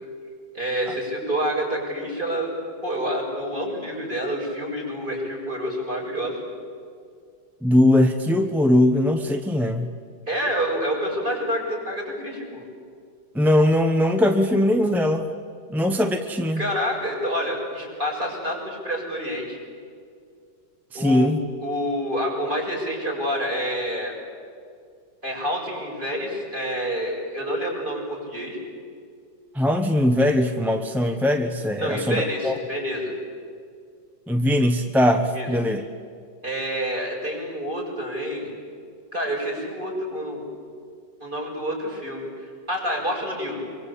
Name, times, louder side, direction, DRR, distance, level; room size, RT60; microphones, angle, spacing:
voice 1, 0.5-2.5 2.8-6.4 10.3-12.6 16.6-19.6 20.9-21.3 21.6-24.1 25.2-28.6 31.8-33.1 35.3-35.5 36.4-38.5 39.1-40.5 41.2-43.6, equal, 25° right, -2 dB, 7.4 m, -28 dB
voice 2, 7.6-9.9 13.3-15.2 15.7-16.6 20.9-21.4 29.5-32.5 34.3-35.8, left 1 dB, ahead, 5 dB, 0.8 m, -20 dB
25.5 x 24.0 x 8.5 m, 2.3 s
omnidirectional pair, 1.9 m